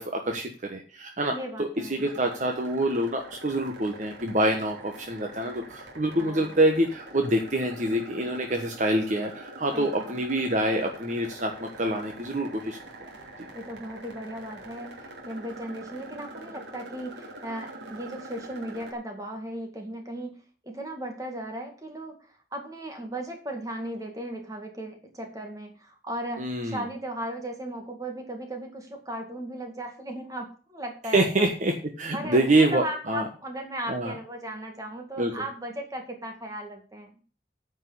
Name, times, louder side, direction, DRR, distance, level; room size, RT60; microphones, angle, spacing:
voice 1, 0.0-1.3 1.6-12.8 26.4-26.9 31.1-33.2 33.9-34.1 35.2-35.3, right 1 dB, 45° right, 3 dB, 1.3 m, -26 dB
voice 2, 1.3-2.1 6.2-6.7 9.7-10.2 13.5-31.5 32.1-37.1, right 1 dB, 20° right, 3 dB, 2.2 m, -37 dB
sound 1, 2.0-18.9, right 2 dB, 85° right, 2.8 m, -44 dB
9.5 x 5.4 x 8.1 m, 0.39 s
head